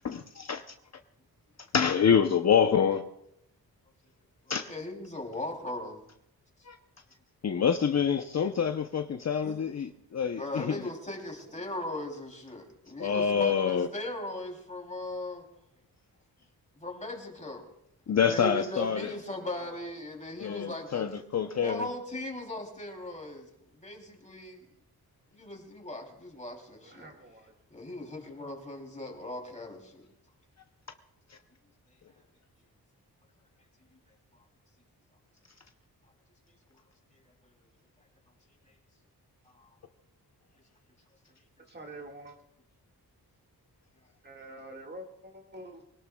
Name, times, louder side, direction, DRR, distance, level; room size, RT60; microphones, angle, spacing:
voice 1, 0.0-0.6 1.7-3.0 4.5-4.7 6.7-6.8 7.4-10.8 13.0-13.9 18.1-19.1 20.4-21.9 31.3-31.4, left 7 dB, 45° left, 6 dB, 0.7 m, -26 dB
voice 2, 4.7-6.0 9.4-9.6 10.3-15.4 16.8-17.7 18.3-21.1 21.6-24.6 25.3-27.1 27.7-30.0 34.3-34.4 36.7-36.8 37.1-37.2 38.7-38.8 39.4-39.7, left 1 dB, 20° left, 1 dB, 3.0 m, -38 dB
voice 3, 19.4-19.9 26.8-27.5 41.7-42.4 44.2-45.8, right 1 dB, 25° right, 2 dB, 1.8 m, -46 dB
23.5 x 18.0 x 2.3 m, 0.77 s
wide cardioid pair, 115°, 38 cm